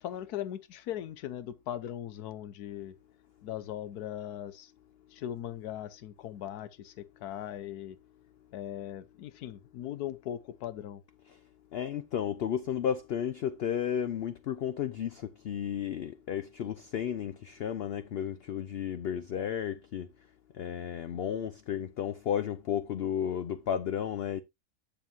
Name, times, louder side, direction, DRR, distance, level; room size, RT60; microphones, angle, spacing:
voice 1, 0.0-2.9 3.4-4.7 5.1-8.0 8.5-11.0, left 11 dB, 90° left, 1.2 m, -39 dB
voice 2, 11.7-20.1 20.5-24.4, left 9 dB, 70° left, 0.5 m, -33 dB
9.3 x 7.3 x 2.7 m
omnidirectional pair, 1.6 m